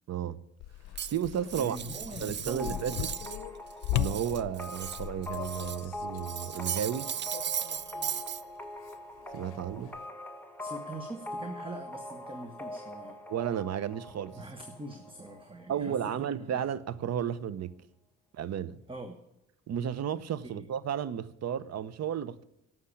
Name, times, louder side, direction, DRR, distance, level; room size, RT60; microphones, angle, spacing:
voice 1, 0.1-0.4 1.1-1.8 2.2-3.1 3.9-7.1 9.3-9.9 13.3-14.4 15.7-17.7 18.3-18.8 19.7-22.5, right 9 dB, 60° right, 0.9 m, -33 dB
sound 1, 0.6-8.2 8.5-10.1, left 14 dB, 85° left, 0.6 m, -39 dB
Cutlery silverware, 1.0-3.4 3.7-5.9 6.2-8.4, right 9 dB, 35° right, 0.5 m, -37 dB
voice 2, 1.6-3.1 10.6-13.2 14.3-16.4 18.9-19.2 20.4-20.7, right 2 dB, 15° right, 1.3 m, -43 dB
sound 2, 2.6-16.1, left 1 dB, 5° left, 1.5 m, -43 dB
12.0 x 7.5 x 9.8 m
cardioid pair, 90°, 30 cm